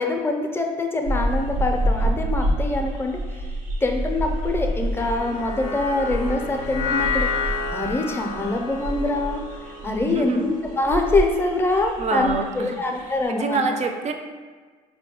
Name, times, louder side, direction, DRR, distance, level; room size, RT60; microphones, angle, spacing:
voice 1, 0.0-3.2 3.8-13.6, left 2 dB, 15° left, 3 dB, 0.5 m, -24 dB
sound 1, 1.0-13.3, right 1 dB, 85° right, 0.6 m, -28 dB
sound 2, 5.0-11.4, left 4 dB, 75° left, 0.5 m, -30 dB
voice 2, 10.1-10.5 12.0-12.8 13.1-14.1, right 3 dB, 40° right, 6 dB, 0.4 m, -26 dB
4.6 x 2.2 x 2.9 m, 1.5 s
hypercardioid pair, 60°, 18 cm